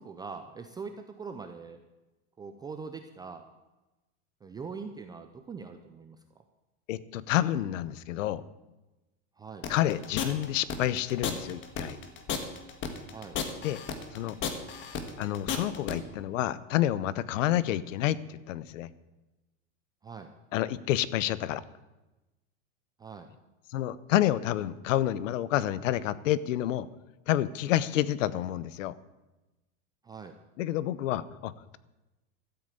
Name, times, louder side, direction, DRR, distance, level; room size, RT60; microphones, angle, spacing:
voice 1, 0.0-1.8 2.4-3.4 4.4-6.2 9.4-9.6 13.1-13.4 20.0-20.3 23.0-23.3 30.0-30.3, right 5 dB, 10° right, 6 dB, 0.5 m, -42 dB
voice 2, 6.9-8.4 9.7-12.0 13.6-13.8 14.1-14.4 15.2-18.9 20.5-21.6 23.7-26.9 27.3-29.0 30.6-31.8, left 13 dB, 85° left, 17 dB, 0.9 m, -29 dB
sound 1, 9.6-15.9, left 7 dB, 30° left, 1.6 m, -33 dB
13.0 x 7.9 x 8.9 m, 1.1 s
supercardioid pair, 150°, 37 cm